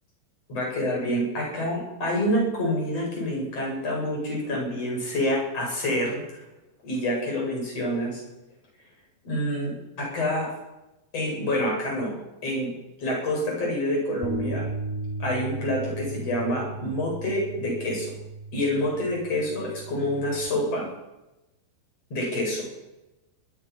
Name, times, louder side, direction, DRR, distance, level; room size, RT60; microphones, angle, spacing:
voice 1, 0.5-6.2 6.8-8.2 9.2-10.5 11.1-12.2 12.4-12.7 13.0-14.7 15.2-18.1 18.5-20.9 22.1-22.7, left 1 dB, 35° left, -1 dB, 8.7 m, -27 dB
sound 1, 14.2-20.5, right 2 dB, 5° right, 3.1 m, -36 dB
23.5 x 19.5 x 5.9 m, 0.98 s
omnidirectional pair, 4.8 m